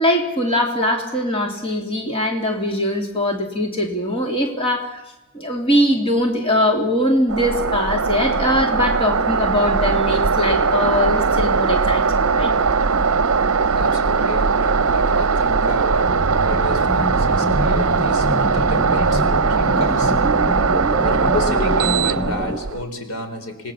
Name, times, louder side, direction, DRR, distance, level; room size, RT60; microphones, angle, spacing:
voice 1, 0.0-5.0 5.3-12.5, left 1 dB, 25° left, 1 dB, 2.8 m, -21 dB
sound 1, 7.3-22.8, right 5 dB, 70° right, 0.8 m, -19 dB
voice 2, 13.7-20.1 21.0-23.7, left 1 dB, 85° left, 6 dB, 3.7 m, -30 dB
sound 2, 16.0-22.6, left 1 dB, 5° left, 1.0 m, -27 dB
26.5 x 19.5 x 7.2 m, 0.99 s
head